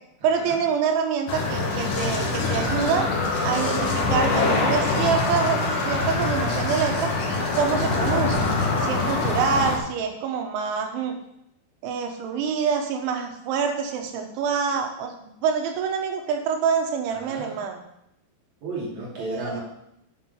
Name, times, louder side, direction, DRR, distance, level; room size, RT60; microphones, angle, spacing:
voice 1, 0.2-3.1 3.4-7.1 7.6-8.4 8.8-11.2 11.8-17.8 19.2-19.6, right 6 dB, 90° right, 4 dB, 3.6 m, -26 dB
sound 1, 1.3-9.8, left 3 dB, 60° left, 2.4 m, -24 dB
voice 2, 17.1-17.6 18.6-19.6, right 2 dB, 45° right, -4 dB, 3.8 m, -33 dB
11.5 x 5.8 x 5.6 m, 0.78 s
omnidirectional pair, 5.2 m